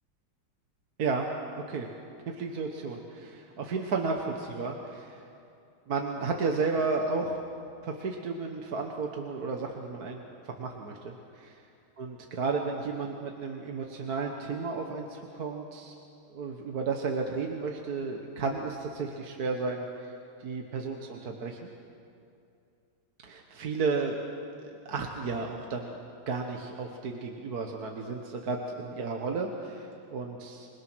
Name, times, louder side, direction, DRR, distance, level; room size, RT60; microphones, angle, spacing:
voice 1, 1.0-1.9 2.3-5.2 5.9-7.4 7.8-10.2 10.6-11.1 12.0-15.9 16.3-20.1 20.4-21.6 23.2-24.2 24.6-26.0 26.3-30.7, right 4 dB, 50° right, 2 dB, 1.7 m, -33 dB
27.5 x 21.0 x 6.2 m, 2.6 s
omnidirectional pair, 2.3 m